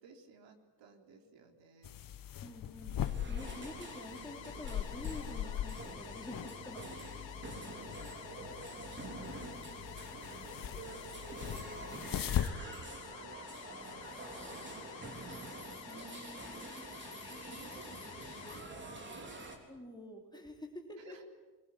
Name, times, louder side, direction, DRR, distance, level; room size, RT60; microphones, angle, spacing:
voice 1, 0.0-2.0 7.4-9.4 9.8-11.0 11.3-15.6 15.9-16.0 17.2-19.4 21.0-21.3, right 4 dB, 80° right, 4 dB, 3.7 m, -59 dB
sound 1, 1.8-12.5, left 11 dB, 50° left, 1.1 m, -40 dB
voice 2, 2.4-6.8 9.0-9.2 15.9-16.8 19.7-21.2, left 1 dB, 10° left, 2 dB, 3.5 m, -48 dB
sound 2, 3.0-19.6, right 2 dB, 25° right, 3.8 m, -47 dB
sound 3, 3.4-18.6, left 11 dB, 75° left, 2.0 m, -51 dB
24.0 x 21.5 x 9.9 m, 1.2 s
cardioid pair, 160°, 44 cm